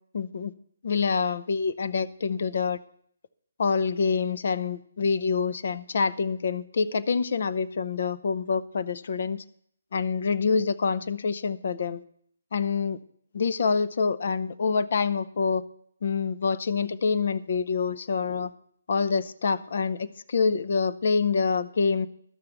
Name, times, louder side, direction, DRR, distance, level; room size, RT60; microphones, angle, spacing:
voice 1, 0.1-0.5 0.8-2.8 3.6-9.4 9.9-12.0 12.5-13.0 13.3-15.6 16.0-18.5 18.9-22.1, left 5 dB, 55° left, 14 dB, 0.7 m, -26 dB
12.5 x 6.7 x 7.1 m, 0.65 s
figure-of-eight pair, 145°, 0 cm